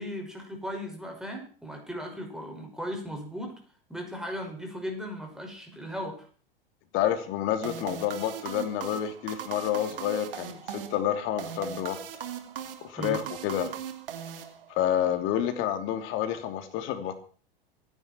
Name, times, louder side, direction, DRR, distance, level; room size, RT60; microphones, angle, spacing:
voice 1, 0.0-3.6 3.9-6.3 13.0-13.2, equal, ahead, 2 dB, 5.6 m, -37 dB
voice 2, 6.9-12.0 12.8-13.7 14.7-17.2, left 10 dB, 45° left, 7 dB, 3.0 m, -29 dB
sound 1, 7.6-15.0, right 9 dB, 70° right, 2.3 m, -39 dB
26.0 x 10.5 x 4.5 m, 0.40 s
figure-of-eight pair, 90°, 29 cm